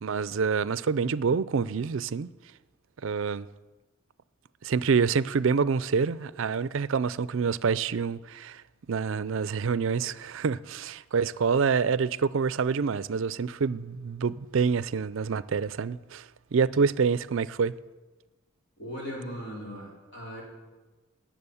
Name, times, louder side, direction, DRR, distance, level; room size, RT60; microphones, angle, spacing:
voice 1, 0.0-2.3 3.0-3.5 4.6-8.6 8.9-16.3 16.5-17.7, right 5 dB, 70° right, 0.4 m, -27 dB
voice 2, 18.8-20.4, equal, 55° left, 4.7 m, -38 dB
19.5 x 7.4 x 7.1 m
head